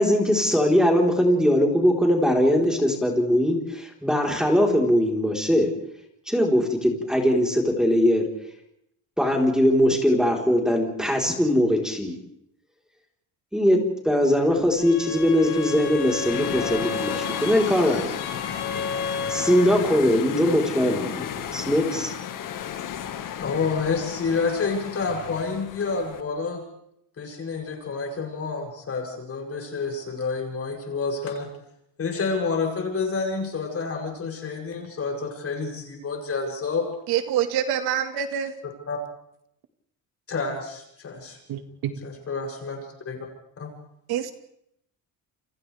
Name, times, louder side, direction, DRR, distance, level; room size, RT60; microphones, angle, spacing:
voice 1, 0.0-5.7 6.3-8.2 9.2-12.2 13.5-18.1 19.3-22.1, equal, ahead, 0 dB, 4.2 m, -21 dB
Bowed string instrument, 14.8-19.9, left 5 dB, 75° left, 7.4 m, -32 dB
sound 1, 14.9-26.2, left 9 dB, 55° left, 1.8 m, -34 dB
voice 2, 23.4-26.6 27.2-31.5 32.0-36.9 38.9-39.0 40.3-41.4 42.0-43.2 43.6-43.7, left 4 dB, 40° left, 1 dB, 7.8 m, -29 dB
voice 3, 37.1-38.5 41.5-41.9 44.1-44.3, right 10 dB, 75° right, 8 dB, 1.9 m, -26 dB
29.5 x 26.0 x 3.5 m, 0.74 s
cardioid pair, 130°, 38 cm